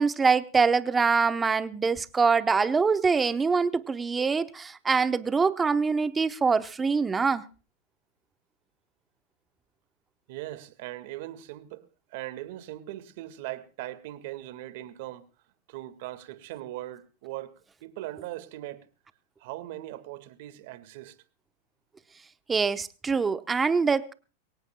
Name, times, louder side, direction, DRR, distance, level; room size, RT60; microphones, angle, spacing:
voice 1, 0.0-7.4 22.5-24.1, right 5 dB, 15° right, 0.9 m, -24 dB
voice 2, 10.3-15.3 15.7-17.5 17.8-18.9 19.4-21.2, right 15 dB, 60° right, 1.9 m, -40 dB
23.5 x 18.0 x 2.3 m
supercardioid pair, 135°, 0 cm